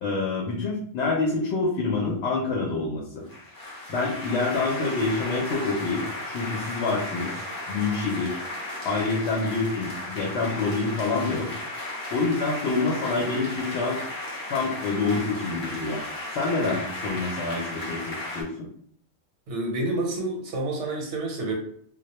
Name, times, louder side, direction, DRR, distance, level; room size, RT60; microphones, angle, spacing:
voice 1, 0.0-3.3 3.9-7.3 7.7-8.4 8.8-11.5 12.1-14.1 14.5-16.0 16.3-18.7, left 3 dB, 65° left, -2 dB, 0.8 m, -27 dB
sound 1, 3.2-18.4, left 1 dB, 30° left, 0.4 m, -35 dB
voice 2, 19.5-21.5, right 2 dB, 75° right, 1 dB, 1.0 m, -28 dB
2.2 x 2.1 x 2.8 m, 0.62 s
omnidirectional pair, 1.3 m